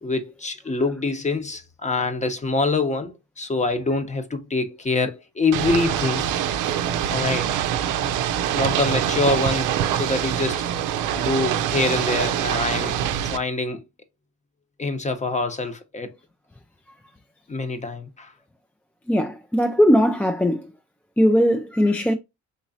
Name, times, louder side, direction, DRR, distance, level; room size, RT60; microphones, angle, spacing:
voice 1, 0.0-6.2 7.1-7.5 8.5-10.6 11.0-13.0 13.3-13.8 14.8-16.1 17.5-18.3, left 3 dB, 25° left, 0.8 m, -25 dB
Ocean / Boat Water vehicle, 5.5-13.4, right 10 dB, 90° right, 0.5 m, -24 dB
voice 2, 19.1-20.6 21.2-22.1, equal, 5° left, 0.3 m, -19 dB
3.9 x 3.0 x 2.7 m
cardioid pair, 90°, 30 cm